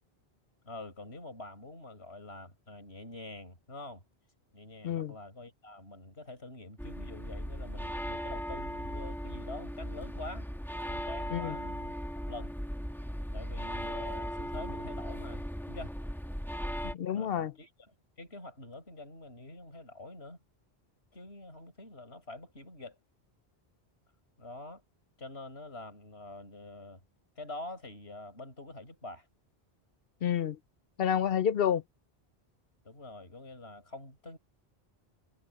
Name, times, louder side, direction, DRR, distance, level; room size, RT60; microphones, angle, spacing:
voice 1, 0.6-4.0 4.5-10.5 10.9-11.9 12.3-12.5 13.3-15.9 17.1-20.4 21.1-23.0 24.4-24.8 25.2-27.0 27.4-29.3 32.8-34.4, left 2 dB, 85° left, 7.6 m, -46 dB
sound 1, 6.8-17.0, equal, ahead, 1.6 m, -37 dB
voice 2, 16.9-17.5 30.2-30.6 31.0-31.8, left 9 dB, 65° left, 0.9 m, -29 dB
omnidirectional pair, 1.1 m